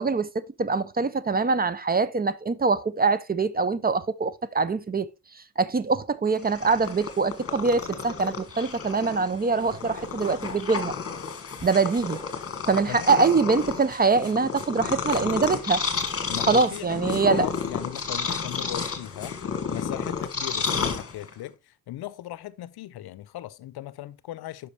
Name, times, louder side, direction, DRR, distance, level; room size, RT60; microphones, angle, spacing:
voice 1, 0.0-5.1 5.6-11.0 11.6-12.2 12.7-15.8 16.5-17.5, right 4 dB, 25° right, 0.5 m, -24 dB
Purr, 6.3-21.5, left 6 dB, 35° left, 1.6 m, -31 dB
voice 2, 12.9-13.2 16.3-19.4 19.7-24.7, left 14 dB, 70° left, 0.6 m, -38 dB
9.7 x 5.8 x 3.2 m
cardioid pair, 95°, 39 cm